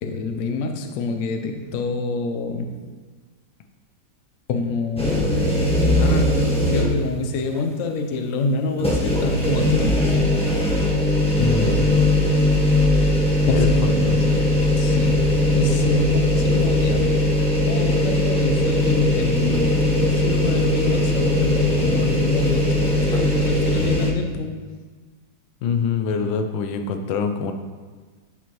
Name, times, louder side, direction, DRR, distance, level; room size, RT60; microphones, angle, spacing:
voice 1, 0.0-2.8 4.5-5.7 6.0-10.2 13.5-14.3 14.8-17.2 17.7-24.6, left 3 dB, 65° left, 6 dB, 0.8 m, -26 dB
sound 1, 5.0-7.1 7.5-7.6 8.8-24.1, left 1 dB, 10° left, 0.4 m, -19 dB
voice 2, 11.4-12.0 13.4-14.4 25.6-27.5, left 5 dB, 90° left, 7 dB, 1.3 m, -25 dB
9.1 x 4.6 x 3.0 m, 1.4 s
omnidirectional pair, 2.0 m